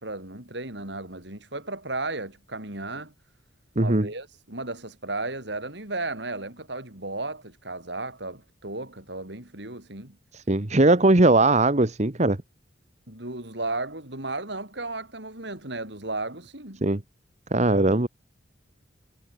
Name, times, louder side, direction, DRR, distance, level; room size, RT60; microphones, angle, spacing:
voice 1, 0.0-3.1 3.8-10.2 13.1-16.9, right 2 dB, 60° right, 5.7 m, -34 dB
voice 2, 3.8-4.1 10.3-12.4 16.8-17.0 17.5-18.1, right 2 dB, 35° right, 1.3 m, -20 dB
head